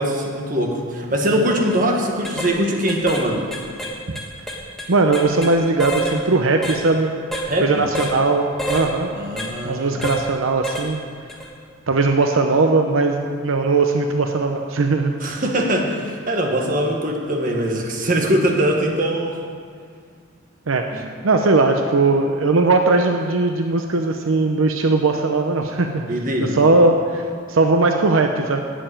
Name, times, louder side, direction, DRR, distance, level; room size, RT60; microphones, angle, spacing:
voice 1, 0.0-3.5 7.5-7.9 9.1-10.0 15.2-19.4 20.9-21.0 26.1-26.7, right 1 dB, 40° right, 1 dB, 1.6 m, -22 dB
sound 1, 1.7-1.8 2.2-2.5 2.9-3.3 3.5-5.5 5.8-6.2 6.6-6.8 7.3-7.5 8.0-8.2 8.6-8.9 9.4-9.5 10.0-10.2 10.6-10.9 11.3-11.5, right 1 dB, ahead, 1.3 m, -27 dB
voice 2, 4.9-9.1 9.6-11.0 11.9-15.1 20.7-26.1 26.5-28.6, right 3 dB, 80° right, 4 dB, 0.7 m, -19 dB
11.5 x 7.8 x 9.0 m, 2.1 s
head